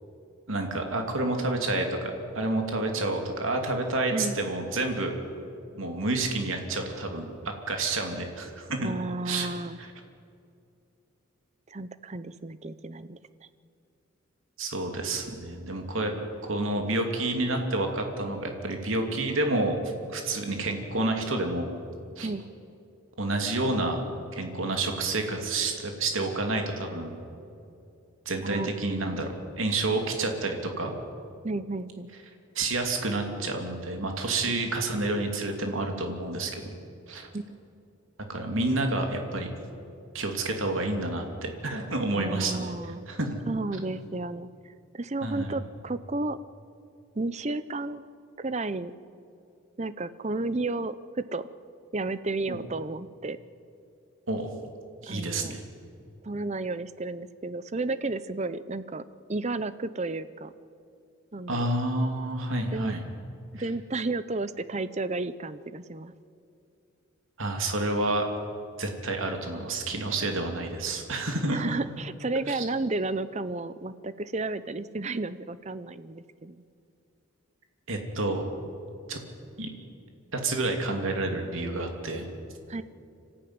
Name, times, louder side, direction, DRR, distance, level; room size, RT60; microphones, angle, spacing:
voice 1, 0.5-5.1 5.8-8.9 9.3-9.5 9.8-9.9 14.6-16.1 16.4-19.8 20.1-21.7 22.2-22.3 23.2-24.0 24.3-27.1 28.3-30.9 32.5-36.7 37.1-37.3 38.3-39.5 40.1-42.7 43.1-43.3 45.2-45.6 52.5-52.6 54.3-54.5 55.0-55.6 61.5-63.0 67.4-68.3 68.8-71.8 72.5-72.6 77.9-78.5 79.1-79.2 79.6-79.7 80.3-82.3, right 2 dB, 70° right, 3 dB, 2.7 m, -29 dB
voice 2, 8.8-9.8 11.7-13.2 22.2-22.4 28.4-28.7 31.4-32.1 37.3-37.6 42.1-43.1 43.5-46.4 47.2-48.0 48.4-48.9 49.8-51.5 51.9-53.4 55.1-55.6 56.2-59.0 59.3-60.5 61.3-61.7 62.7-62.9 63.5-66.1 71.5-76.6 82.7-82.8, right 2 dB, 30° right, 14 dB, 0.6 m, -32 dB
25.5 x 14.5 x 9.6 m, 2.6 s
head